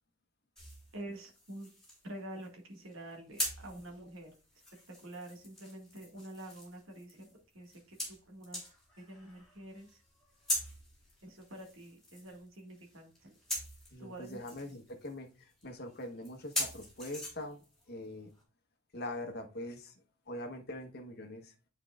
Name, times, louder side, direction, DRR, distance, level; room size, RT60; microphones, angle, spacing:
sound 1, 0.6-18.4, left 1 dB, ahead, 3.1 m, -43 dB
voice 1, 0.9-1.7 2.0-4.3 4.9-8.6 9.0-10.0 11.2-13.3 14.0-14.4, right 1 dB, 60° right, 1 dB, 1.9 m, -47 dB
voice 2, 13.9-18.3 18.9-19.9 20.3-21.5, left 1 dB, 45° left, 5 dB, 1.2 m, -43 dB
9.8 x 4.7 x 2.4 m, 0.34 s
head